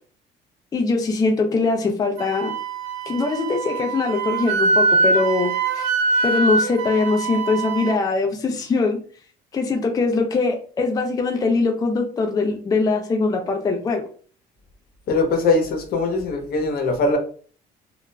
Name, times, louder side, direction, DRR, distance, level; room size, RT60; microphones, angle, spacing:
voice 1, 0.7-2.5 3.1-5.9 6.2-9.0 9.5-14.0, left 3 dB, 20° left, 3 dB, 0.4 m, -22 dB
Wind instrument woodwind instrument, 2.2-8.0, right 3 dB, 90° right, 0.4 m, -23 dB
voice 2, 15.1-17.2, left 3 dB, 65° left, 4 dB, 0.8 m, -21 dB
2.9 x 2.4 x 2.2 m, 0.43 s
cardioid pair, 110°, 17 cm